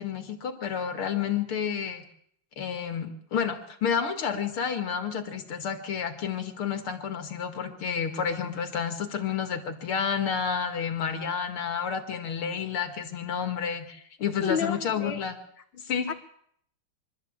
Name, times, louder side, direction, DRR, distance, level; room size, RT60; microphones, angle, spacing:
voice 1, 0.0-2.0 2.6-15.3 15.7-16.1, left 7 dB, 90° left, 7 dB, 2.9 m, -30 dB
voice 2, 14.4-15.2 16.1-16.2, left 6 dB, 60° left, 8 dB, 2.2 m, -30 dB
24.5 x 13.0 x 8.8 m, 0.68 s
omnidirectional pair, 2.3 m